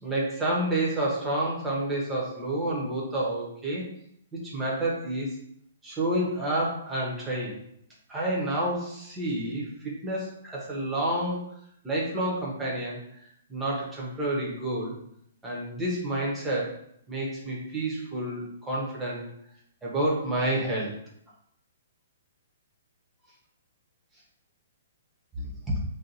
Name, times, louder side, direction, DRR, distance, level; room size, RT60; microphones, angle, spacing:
voice 1, 0.0-3.8 4.3-5.4 5.8-7.6 8.1-9.7 10.0-11.6 11.8-13.0 13.5-15.0 15.4-16.8 17.1-19.3 19.8-20.9 25.4-25.8, right 1 dB, 5° right, -5 dB, 0.7 m, -29 dB
2.5 x 2.2 x 4.0 m, 0.71 s
hypercardioid pair, 170°, 0 cm